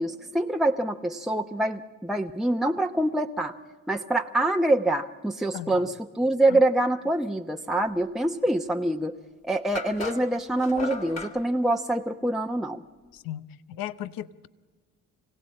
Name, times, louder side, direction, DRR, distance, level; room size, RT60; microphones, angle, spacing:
voice 1, 0.0-3.5 3.9-9.2 9.4-12.8, right 1 dB, ahead, 1.0 m, -25 dB
voice 2, 5.5-5.9 6.5-6.6 13.1-14.5, left 12 dB, 65° left, 0.9 m, -36 dB
sound 1, 8.9-9.0 9.8-11.4, left 3 dB, 45° left, 3.2 m, -35 dB
25.0 x 17.5 x 8.7 m
hypercardioid pair, 45°, 37 cm